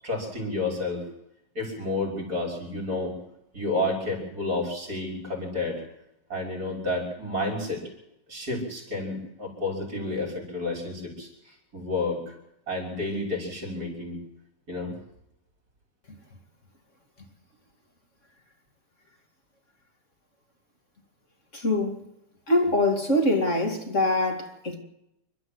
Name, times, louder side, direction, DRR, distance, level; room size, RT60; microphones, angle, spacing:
voice 1, 0.0-1.0 1.5-3.1 3.5-5.8 6.3-7.8 8.3-11.3 11.7-12.3 12.7-14.2 14.7-14.9, left 2 dB, 60° right, 6.6 m, -30 dB
voice 2, 21.5-22.0 22.5-24.8, left 1 dB, 45° left, 2.9 m, -24 dB
29.0 x 12.5 x 8.0 m
omnidirectional pair, 1.9 m